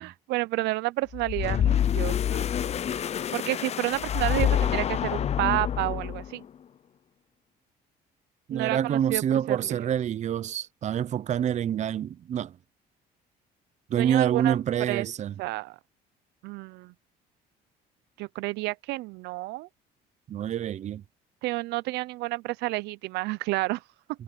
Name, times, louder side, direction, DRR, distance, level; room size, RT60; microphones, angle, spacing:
voice 1, 0.0-2.4 3.3-6.4 8.5-9.6 13.9-14.6 14.9-15.1 15.4-15.8 16.4-16.9 18.2-19.7 21.4-23.8, right 20 dB, 85° right, 0.5 m, -30 dB
sound 1, 1.1-6.4, left 9 dB, 40° left, 0.6 m, -27 dB
voice 2, 8.5-12.6 13.9-15.3 20.3-21.0, right 9 dB, 45° right, 0.6 m, -27 dB
cardioid pair, 110°, 17 cm